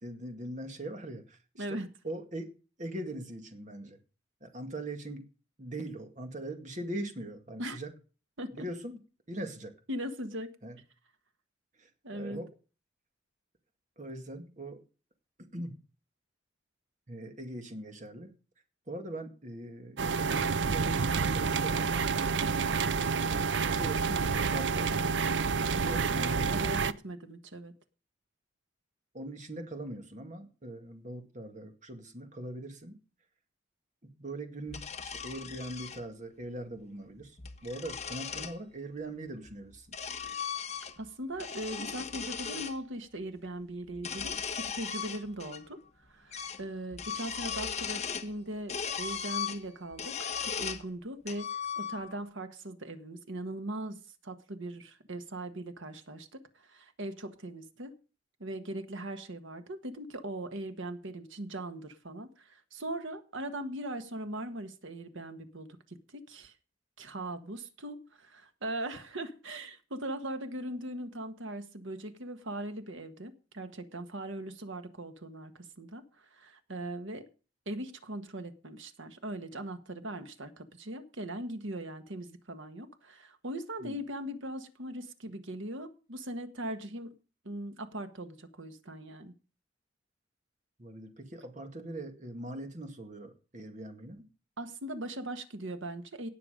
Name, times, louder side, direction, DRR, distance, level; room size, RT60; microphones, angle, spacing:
voice 1, 0.0-1.8 2.0-2.5 2.8-4.0 4.4-5.3 5.6-7.9 8.5-9.0 9.3-9.7 10.6-10.8 11.8-12.5 14.0-14.8 15.4-15.8 17.1-18.3 18.9-21.9 23.7-25.0 25.9-26.7 29.1-33.0 34.0-39.9 83.8-84.0 90.8-94.2, right 1 dB, 40° right, 5 dB, 2.1 m, -41 dB
voice 2, 1.6-1.9 7.6-7.8 8.4-8.6 9.9-10.5 12.0-12.4 25.7-26.2 26.5-27.7 41.0-51.5 51.8-57.9 58.4-66.5 67.0-77.3 77.6-87.1 87.4-89.3 94.6-96.3, right 1 dB, 80° right, 8 dB, 1.5 m, -40 dB
sound 1, 20.0-26.9, right 5 dB, 65° right, 0.6 m, -29 dB
sound 2, 34.7-36.0 37.2-38.6 39.5-41.1 41.4-42.8 43.9-45.6 45.9-46.0 46.3-46.6 46.9-48.3 48.7-50.9 51.3-52.2, left 6 dB, 35° left, 1.2 m, -37 dB
18.0 x 7.0 x 5.2 m, 0.36 s
head